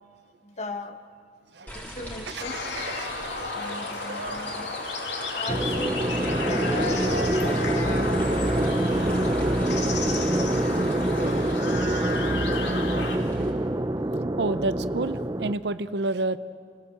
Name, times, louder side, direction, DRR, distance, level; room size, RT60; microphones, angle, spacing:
voice 1, 0.5-1.0 1.7-2.6 3.5-4.8 5.3-6.0 6.5-7.2 7.4-8.2, left 1 dB, 40° left, 7 dB, 1.4 m, -38 dB
voice 2, 1.5-1.8 2.3-3.8 4.1-4.4 14.4-16.4, right 2 dB, 60° right, 14 dB, 0.7 m, -31 dB
sound 1, 1.7-13.5, equal, 10° left, 3.8 m, -43 dB
sound 2, 2.4-13.2, left 3 dB, 70° left, 2.6 m, -32 dB
sound 3, 5.5-15.5, right 1 dB, 20° right, 0.6 m, -25 dB
28.5 x 17.5 x 7.9 m, 2.2 s
head